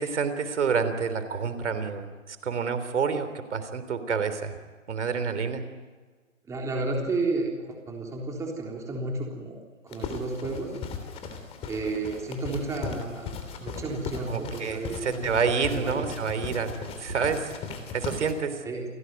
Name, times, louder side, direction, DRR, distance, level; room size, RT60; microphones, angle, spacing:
voice 1, 0.0-4.6 4.9-5.6 14.3-17.5 17.9-18.6, right 5 dB, 60° right, 11 dB, 3.6 m, -28 dB
voice 2, 6.5-9.6 9.8-10.7 11.7-15.3 15.7-16.0 18.6-18.9, right 3 dB, 10° right, 0 dB, 3.6 m, -32 dB
sound 1, 9.9-18.3, left 5 dB, 15° left, 3.1 m, -38 dB
29.0 x 18.5 x 9.3 m, 1.4 s
hypercardioid pair, 150°, 39 cm